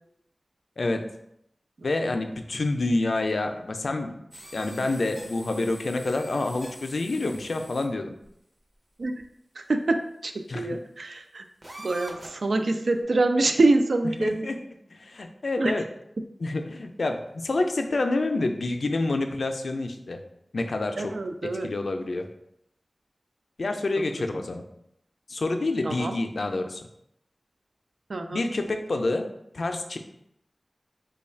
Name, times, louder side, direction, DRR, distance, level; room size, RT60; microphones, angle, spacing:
voice 1, 0.8-1.1 1.8-4.2 4.5-8.1 10.5-10.8 14.2-14.6 14.9-15.9 16.4-20.2 20.5-21.2 21.4-22.3 23.6-24.6 25.3-26.8 28.3-29.3 29.5-30.0, left 2 dB, 80° left, 5 dB, 0.4 m, -28 dB
sound 1, 4.3-7.9 8.2-8.3 9.2-9.3 11.6-12.5, right 1 dB, 35° right, 0.6 m, -44 dB
voice 2, 9.6-11.4 11.8-14.5 15.6-15.7 21.0-21.7 24.3-24.4 25.8-26.2 28.1-28.4, right 2 dB, 85° right, 6 dB, 0.3 m, -25 dB
3.1 x 2.3 x 4.3 m, 0.77 s
wide cardioid pair, 80°, 0 cm